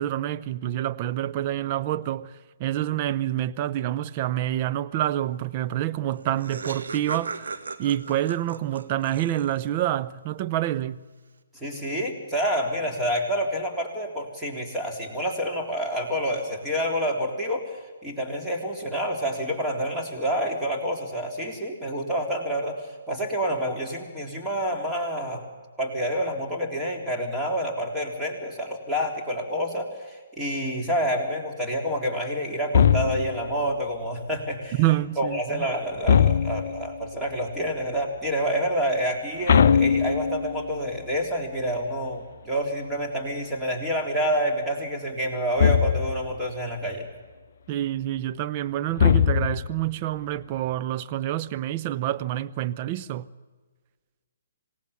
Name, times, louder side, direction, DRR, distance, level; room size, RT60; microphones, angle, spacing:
voice 1, 0.0-2.3 2.6-11.0 34.8-35.7 47.7-53.3, right 13 dB, 35° right, 0.7 m, -27 dB
Laughter, 5.8-5.9 6.1-9.8, right 4 dB, 65° right, 1.8 m, -37 dB
voice 2, 11.5-25.4 25.8-34.8 35.2-47.1, equal, 5° right, 3.8 m, -28 dB
sound 1, 32.7-33.5 36.0-36.9 39.5-40.6 45.6-46.3 49.0-49.8, left 7 dB, 50° left, 0.7 m, -20 dB
27.0 x 19.0 x 7.2 m
figure-of-eight pair, 130°, 0 cm